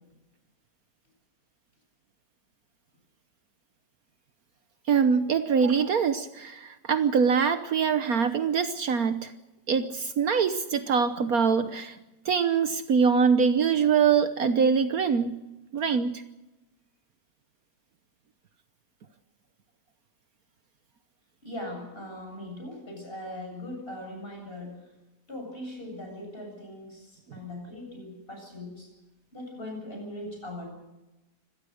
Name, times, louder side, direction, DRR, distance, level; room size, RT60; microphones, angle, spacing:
voice 1, 4.9-9.3 9.7-12.0 12.2-15.4 15.7-16.2, right 6 dB, 65° right, 10 dB, 1.4 m, -24 dB
voice 2, 21.4-24.9 25.3-28.9 29.3-30.7, left 1 dB, 35° left, 2 dB, 7.7 m, -40 dB
25.0 x 18.0 x 6.5 m, 1.0 s
omnidirectional pair, 1.8 m